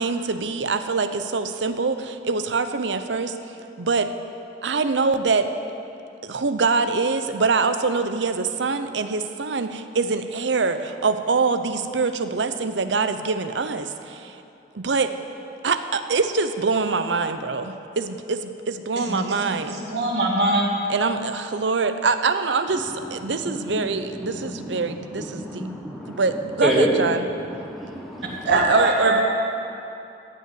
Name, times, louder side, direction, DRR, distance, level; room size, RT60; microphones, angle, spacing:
voice 1, 0.0-3.4 3.8-4.1 4.6-5.5 6.2-14.4 14.7-15.1 15.6-19.8 20.9-25.7 26.1-27.3 28.5-29.2, right 4 dB, 90° right, 9 dB, 0.7 m, -24 dB
voice 2, 19.0-20.6 28.4-29.2, right 2 dB, 70° right, -3 dB, 2.5 m, -23 dB
voice 3, 23.4-23.9 24.2-26.2 26.6-27.0 27.6-28.5, right 1 dB, ahead, -3 dB, 1.1 m, -28 dB
15.0 x 5.6 x 9.3 m, 2.7 s
head